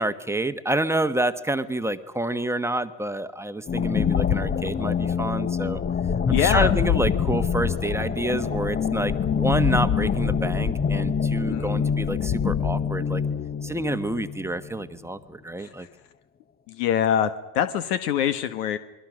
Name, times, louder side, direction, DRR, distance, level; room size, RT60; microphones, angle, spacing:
voice 1, 0.0-5.8 6.3-13.2 13.6-15.9, right 1 dB, 5° right, 10 dB, 1.2 m, -28 dB
sound 1, 3.7-14.7, left 7 dB, 20° left, 0.9 m, -25 dB
voice 2, 6.3-6.7 11.5-11.9 15.6-15.9 16.7-18.8, left 9 dB, 70° left, 10 dB, 1.6 m, -24 dB
28.0 x 22.0 x 6.3 m, 0.96 s
hypercardioid pair, 95°, 47 cm